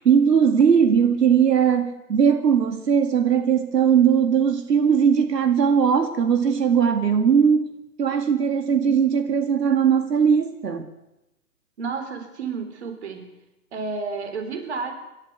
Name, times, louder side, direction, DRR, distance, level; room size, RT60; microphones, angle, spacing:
voice 1, 0.0-7.7 8.0-10.8, right 7 dB, 85° right, 7 dB, 2.3 m, -19 dB
voice 2, 11.8-13.4 13.7-14.9, right 4 dB, 45° right, 7 dB, 3.7 m, -31 dB
27.0 x 12.0 x 8.1 m, 0.94 s
hypercardioid pair, 170°, 48 cm